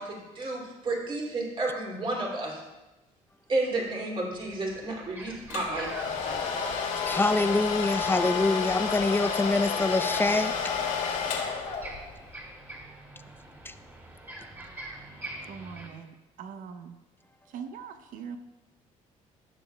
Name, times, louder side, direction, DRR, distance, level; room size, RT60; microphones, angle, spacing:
voice 1, 0.0-2.6 3.5-5.9 6.2-6.4, right 2 dB, 40° right, -2 dB, 2.6 m, -31 dB
sound 1, 3.8-3.9 4.3-15.9, right 1 dB, 20° right, 2.6 m, -46 dB
Domestic sounds home sounds, 5.5-12.2, left 6 dB, 85° left, 2.0 m, -30 dB
voice 2, 7.1-10.5, left 2 dB, 15° left, 11 dB, 0.5 m, -25 dB
voice 3, 15.5-17.0 17.5-18.4, right 7 dB, 75° right, 8 dB, 0.8 m, -42 dB
16.0 x 6.7 x 2.3 m, 1.0 s
cardioid pair, 85°, 14 cm